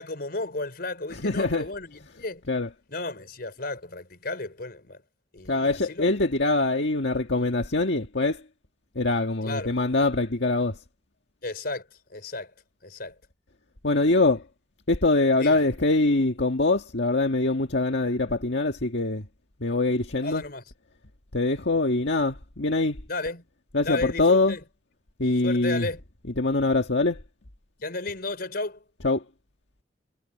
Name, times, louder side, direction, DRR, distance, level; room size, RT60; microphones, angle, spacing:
voice 1, 0.0-2.4 2.9-5.0 5.3-6.1 9.4-9.7 11.4-12.5 12.8-13.1 15.4-15.6 20.2-20.6 23.1-23.4 23.8-24.6 25.2-26.0 27.8-28.8, left 2 dB, 60° left, 4.5 m, -33 dB
voice 2, 1.1-1.7 2.5-2.7 5.5-8.4 8.9-10.8 13.8-14.4 14.9-19.2 19.6-20.4 21.3-23.0 23.7-24.6 25.2-25.9 26.4-27.2 29.0-29.2, left 2 dB, 80° left, 1.7 m, -23 dB
head